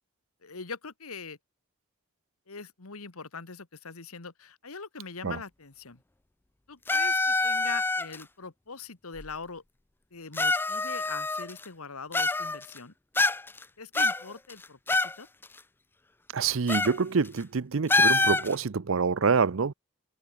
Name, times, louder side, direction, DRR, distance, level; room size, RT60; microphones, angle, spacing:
voice 1, 0.4-1.4 2.5-6.0 6.7-9.6 10.1-12.9 13.8-15.3, left 4 dB, 85° left, 1.7 m, -42 dB
sound 1, 6.9-8.2 9.2-9.3 10.3-11.6 12.1-12.8 13.2-13.6 13.9-15.1 15.4-15.5 16.7-17.0 17.2-17.4 17.9-18.5, left 2 dB, 10° left, 0.3 m, -26 dB
voice 2, 16.3-19.7, right 5 dB, 65° right, 0.6 m, -26 dB
head